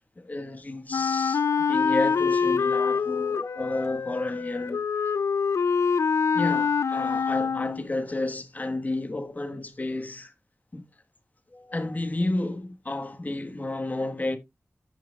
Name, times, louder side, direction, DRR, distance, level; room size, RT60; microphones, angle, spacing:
voice 1, 0.2-4.9 6.3-10.3 10.7-10.9 11.5-14.4, left 2 dB, 35° left, 1.3 m, -31 dB
Wind instrument woodwind instrument, 0.9-7.9, left 5 dB, 80° left, 0.3 m, -25 dB
14.0 x 5.6 x 2.3 m
wide cardioid pair, 100°, 5 cm